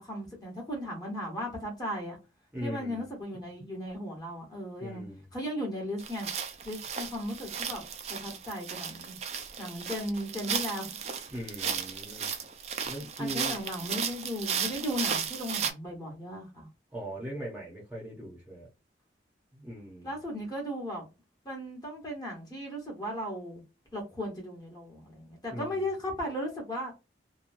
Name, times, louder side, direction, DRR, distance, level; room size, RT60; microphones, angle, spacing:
voice 1, 0.0-2.2 2.6-5.0 5.3-6.3 6.6-7.8 8.1-9.1 9.6-10.9 13.2-16.7 20.0-21.1 21.4-23.6 23.9-26.9, equal, 20° left, 1.2 m, -36 dB
voice 2, 2.5-3.1 4.8-5.3 11.3-12.3 12.9-13.6 16.9-18.7 19.5-20.1 25.5-25.9, equal, 10° right, 0.7 m, -40 dB
sound 1, 6.0-15.7, right 7 dB, 40° right, 0.4 m, -35 dB
3.0 x 2.3 x 2.5 m
head